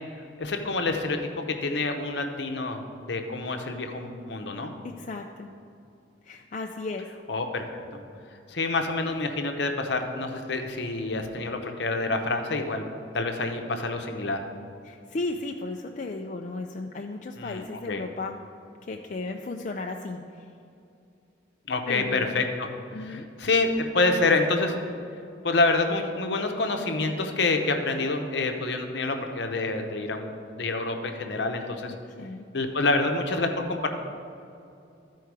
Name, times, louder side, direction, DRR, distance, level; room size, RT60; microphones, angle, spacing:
voice 1, 0.4-2.8 3.1-4.7 7.3-7.6 7.9-8.0 8.5-12.8 13.1-14.4 17.4-18.0 21.7-22.7 23.0-24.8 25.4-31.9 32.5-33.9, left 3 dB, 65° left, 5 dB, 0.8 m, -27 dB
voice 2, 4.8-5.5 6.3-7.1 14.8-18.4 18.8-20.5 21.9-22.3 22.9-23.3 31.9-32.4, left 3 dB, 40° left, 2 dB, 0.4 m, -35 dB
13.0 x 4.6 x 4.7 m, 2.6 s
head